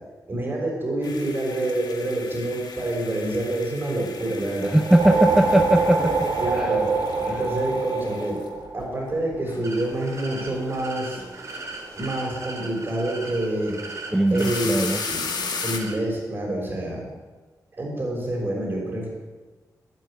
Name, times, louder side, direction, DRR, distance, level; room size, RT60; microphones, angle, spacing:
voice 1, 0.3-4.8 6.0-6.9 7.2-8.4 8.7-11.2 12.0-13.8 14.3-15.2 15.6-17.1 17.8-19.1, right 1 dB, 35° right, -1 dB, 5.8 m, -27 dB
sound 1, 1.0-10.0 10.3-10.9 11.2-11.7 12.0-12.1 14.2-15.8, left 5 dB, 90° left, 2.0 m, -36 dB
voice 2, 4.7-6.1 6.5-6.8 7.3-7.4 14.1-15.0, right 1 dB, 5° right, 9 dB, 0.5 m, -20 dB
sound 2, 4.7-9.3, right 3 dB, 75° right, 3.2 m, -24 dB
sound 3, 9.6-16.0, right 2 dB, 50° right, 3.3 m, -38 dB
12.5 x 12.5 x 9.1 m, 1.2 s
wide cardioid pair, 165°, 7 cm